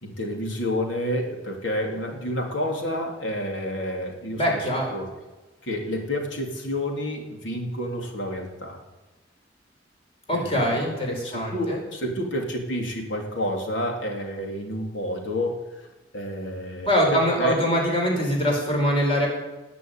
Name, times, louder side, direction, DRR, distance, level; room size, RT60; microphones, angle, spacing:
voice 1, 0.0-5.1 5.6-8.8 10.3-10.9 11.2-15.6 16.1-17.6, equal, 85° left, 1 dB, 3.6 m, -29 dB
voice 2, 4.4-4.9 10.3-11.8 16.9-19.3, equal, 30° left, -1 dB, 5.1 m, -23 dB
19.0 x 6.8 x 9.4 m, 1.2 s
head